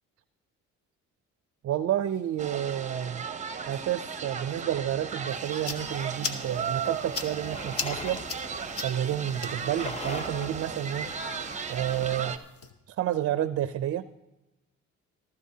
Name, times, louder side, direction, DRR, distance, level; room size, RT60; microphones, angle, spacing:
voice 1, 1.6-3.2 3.7-8.2 8.8-11.1 11.7-12.4 12.9-14.1, right 11 dB, 50° right, 13 dB, 0.5 m, -30 dB
sound 1, 2.4-12.4, right 6 dB, 25° right, 0.8 m, -36 dB
sound 2, 5.3-12.7, left 4 dB, 50° left, 1.1 m, -40 dB
sound 3, 7.3-12.2, left 2 dB, 20° left, 0.9 m, -42 dB
15.0 x 13.0 x 2.7 m, 0.97 s
cardioid pair, 90°, 30 cm